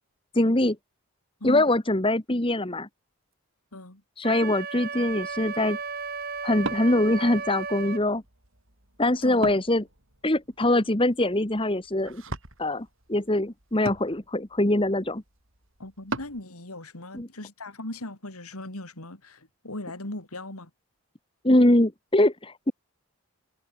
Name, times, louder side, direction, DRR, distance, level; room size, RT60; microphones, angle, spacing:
voice 1, 0.3-0.8 1.4-2.9 4.2-5.8 6.4-8.2 9.0-9.8 10.2-12.2 12.6-15.2 17.1-17.3 21.4-22.7, left 1 dB, 25° left, 1.5 m, -23 dB
voice 2, 3.7-4.0 9.2-9.4 15.8-20.7, left 1 dB, 85° left, 4.1 m, -38 dB
Wind instrument woodwind instrument, 4.2-8.0, right 5 dB, 45° right, 5.6 m, -34 dB
Wood, 4.9-16.4, right 2 dB, 60° right, 6.2 m, -41 dB
head